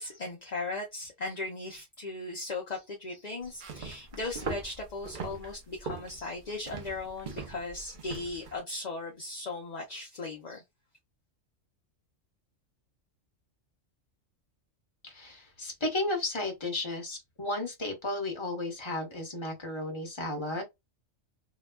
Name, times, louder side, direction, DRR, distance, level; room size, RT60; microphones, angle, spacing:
voice 1, 0.0-10.6, left 3 dB, 45° left, 0.6 m, -37 dB
sound 1, 3.5-8.6, right 4 dB, 50° right, 0.7 m, -41 dB
voice 2, 15.0-20.6, left 2 dB, 25° left, 1.0 m, -34 dB
2.9 x 2.2 x 2.2 m
omnidirectional pair, 1.3 m